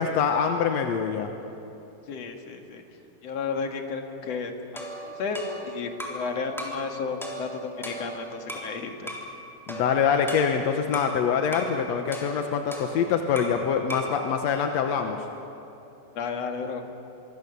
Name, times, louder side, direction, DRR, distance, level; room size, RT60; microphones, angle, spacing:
voice 1, 0.0-1.3 9.7-15.2, left 7 dB, 65° left, 5 dB, 1.8 m, -25 dB
voice 2, 2.1-2.8 3.2-4.5 5.0-9.1 16.2-16.9, left 5 dB, 50° left, 4 dB, 2.6 m, -33 dB
sound 1, 4.8-6.3 6.6-6.9 7.2-8.7 9.1-9.3 9.7-11.2 11.5-11.8 12.1-13.6 13.9-14.2, right 1 dB, ahead, 2.9 m, -37 dB
26.0 x 23.5 x 6.9 m, 2.8 s
omnidirectional pair, 4.1 m